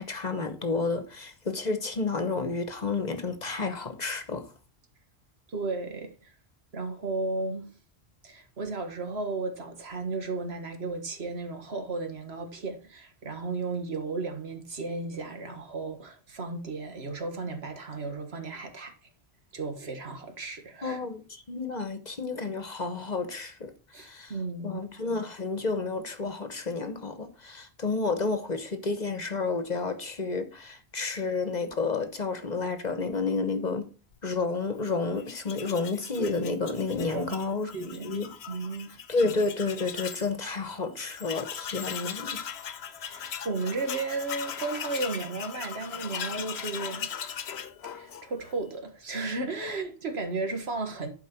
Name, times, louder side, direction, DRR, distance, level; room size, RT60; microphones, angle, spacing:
voice 1, 0.0-4.5 20.8-24.3 24.6-33.9 34.2-38.3 39.1-42.4, left 3 dB, 45° left, 1.1 m, -31 dB
voice 2, 5.5-6.3 6.7-7.7 8.2-18.9 19.5-21.0 23.9-24.8 37.0-37.4 37.7-38.2 38.5-38.9 43.0-47.1 47.9-51.1, right 3 dB, 75° right, 1.7 m, -34 dB
Tools, 35.2-40.3 40.6-40.7 41.0-48.6, left 8 dB, 80° left, 1.0 m, -39 dB
11.5 x 4.8 x 4.5 m
omnidirectional pair, 1.1 m